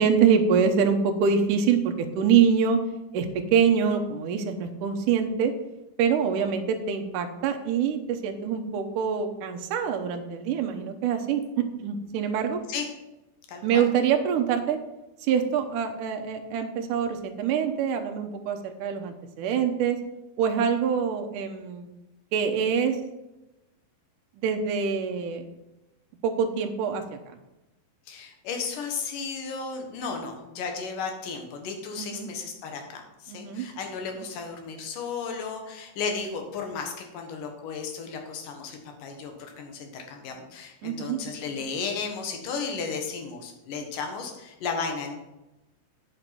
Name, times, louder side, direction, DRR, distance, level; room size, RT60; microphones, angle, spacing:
voice 1, 0.0-2.8 3.1-5.5 6.0-12.6 13.6-14.8 15.3-20.0 20.4-21.9 22.3-23.0 24.4-25.5 26.2-27.0 32.0-32.3 33.3-33.7 34.2-34.3 40.8-41.2, right 7 dB, 70° right, 4 dB, 2.2 m, -25 dB
voice 2, 13.5-13.8 28.1-45.2, left 5 dB, 65° left, 4 dB, 2.8 m, -34 dB
8.8 x 6.7 x 5.9 m, 0.98 s
omnidirectional pair, 4.4 m